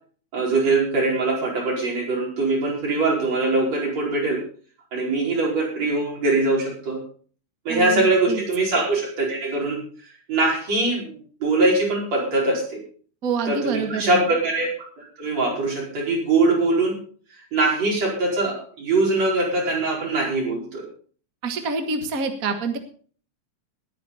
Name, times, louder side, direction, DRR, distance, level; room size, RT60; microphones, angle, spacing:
voice 1, 0.3-4.4 4.9-7.0 7.7-9.8 10.3-12.8 13.5-14.7 15.0-17.0 17.5-20.9, right 2 dB, 60° right, -2 dB, 6.1 m, -22 dB
voice 2, 7.7-8.4 13.2-14.2 21.4-22.8, right 4 dB, 40° right, 6 dB, 1.4 m, -26 dB
20.0 x 9.3 x 4.1 m, 0.43 s
omnidirectional pair, 3.3 m